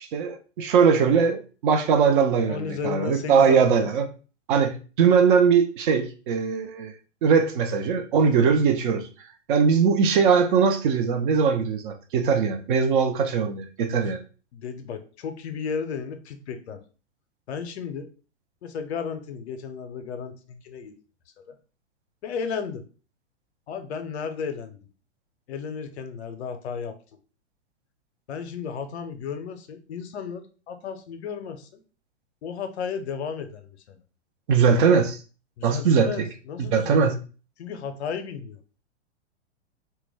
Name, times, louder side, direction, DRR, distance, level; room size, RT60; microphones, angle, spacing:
voice 1, 0.1-4.1 4.5-6.9 7.2-9.1 9.5-14.2 34.5-35.2 35.6-36.3 36.6-37.1, right 6 dB, 45° right, 0.5 m, -21 dB
voice 2, 2.5-3.9 13.8-13.9 14.5-16.8 17.5-18.1 18.6-20.9 21.4-21.6 22.2-22.8 23.7-24.9 25.5-27.0 28.3-31.8 32.4-34.0 35.6-37.0 37.6-38.6, left 6 dB, 65° left, 0.6 m, -34 dB
2.2 x 2.1 x 3.2 m
figure-of-eight pair, 105°, 36 cm